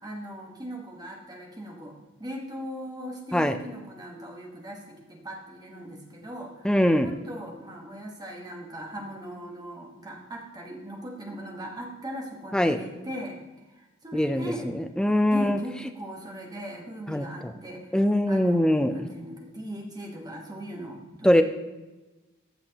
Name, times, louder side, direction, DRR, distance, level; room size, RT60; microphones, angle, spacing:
voice 1, 0.0-6.7 7.0-13.4 13.7-14.7 15.3-18.0 18.3-21.4, equal, 20° right, 0 dB, 1.3 m, -39 dB
voice 2, 6.6-7.1 12.5-12.8 14.1-14.4 14.7-15.6 17.1-17.3 17.9-18.9 21.2-21.4, left 1 dB, 5° left, 7 dB, 0.3 m, -22 dB
15.0 x 5.7 x 2.9 m, 1.1 s
head